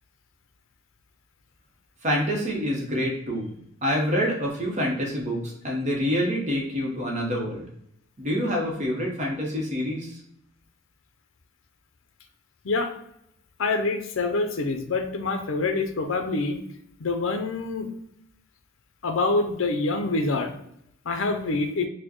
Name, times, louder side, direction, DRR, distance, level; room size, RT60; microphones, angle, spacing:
voice 1, 2.0-7.7 8.2-10.2, equal, 35° right, -1 dB, 0.9 m, -27 dB
voice 2, 13.6-16.6 17.0-17.9 19.0-20.5 21.1-21.9, left 3 dB, 70° left, 6 dB, 0.5 m, -26 dB
4.3 x 2.1 x 2.9 m, 0.75 s
head